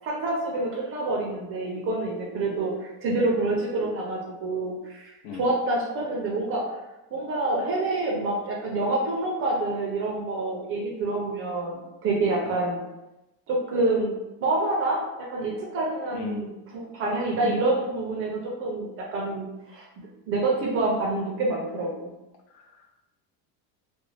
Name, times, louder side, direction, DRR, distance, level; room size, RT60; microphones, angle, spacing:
voice 1, 0.0-5.1 5.4-6.7 7.1-12.8 13.5-14.1 14.4-16.5 16.7-22.1, right 2 dB, 35° right, -2 dB, 0.4 m, -27 dB
voice 2, 16.1-16.5 17.3-17.6 22.5-22.9, left 6 dB, 65° left, 2 dB, 0.6 m, -36 dB
2.4 x 2.0 x 3.1 m, 0.97 s
cardioid pair, 155°, 43 cm